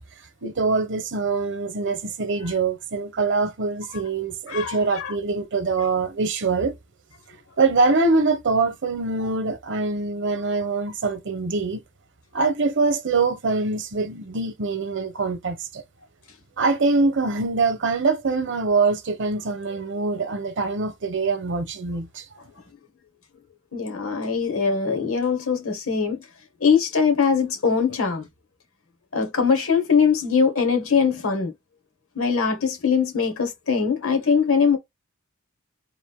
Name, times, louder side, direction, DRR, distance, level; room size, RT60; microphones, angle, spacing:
voice 1, 0.4-6.7 7.6-11.8 12.3-15.8 16.6-22.2, right 3 dB, 60° right, 0.8 m, -24 dB
voice 2, 4.5-5.1 23.7-26.2 26.6-28.3 29.1-31.5 32.1-34.8, left 6 dB, 75° left, 1.6 m, -22 dB
3.8 x 2.6 x 3.5 m
head